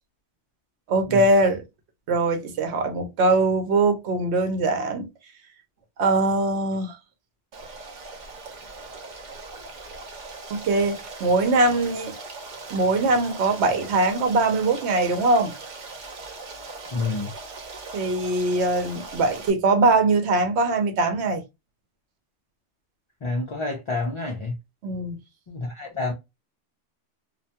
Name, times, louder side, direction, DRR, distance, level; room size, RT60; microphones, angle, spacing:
voice 1, 0.9-1.6 2.1-5.1 6.0-7.0 10.5-12.1 12.7-15.5 17.9-21.4 24.8-25.2, right 2 dB, 70° right, 1.0 m, -22 dB
Stream, 7.5-19.5, right 3 dB, 50° right, 0.6 m, -40 dB
voice 2, 16.9-17.3 23.2-24.5 25.5-26.1, left 3 dB, 45° left, 0.4 m, -28 dB
2.4 x 2.2 x 2.7 m
omnidirectional pair, 1.2 m